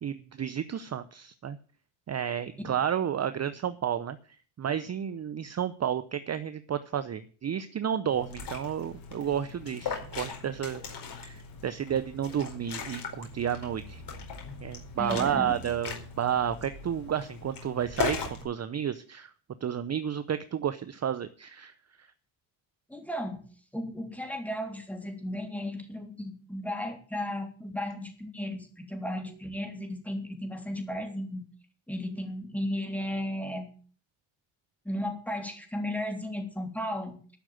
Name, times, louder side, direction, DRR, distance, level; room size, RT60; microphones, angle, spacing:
voice 1, 0.0-1.6 2.1-4.2 4.6-10.8 11.2-14.0 14.6-19.3 19.6-21.7 22.0-22.1, right 9 dB, 35° right, 12 dB, 0.7 m, -31 dB
Liquid, 8.1-18.4, left 5 dB, 55° left, 4.7 m, -39 dB
voice 2, 15.0-15.5 22.9-23.4 23.7-31.4 31.9-33.7 34.8-37.2, left 1 dB, 5° left, 4 dB, 3.3 m, -35 dB
11.5 x 6.3 x 9.4 m, 0.42 s
cardioid pair, 100°, 48 cm